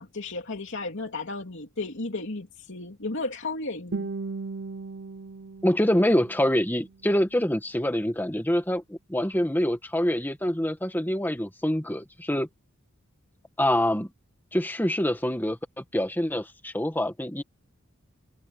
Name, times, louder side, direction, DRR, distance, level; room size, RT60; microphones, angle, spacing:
voice 1, 0.0-4.1, left 3 dB, 60° left, 3.0 m, -34 dB
Guitar, 3.9-6.9, right 4 dB, 60° right, 0.7 m, -37 dB
voice 2, 5.6-12.5 13.6-14.1 14.5-17.4, left 1 dB, 10° left, 1.9 m, -25 dB
head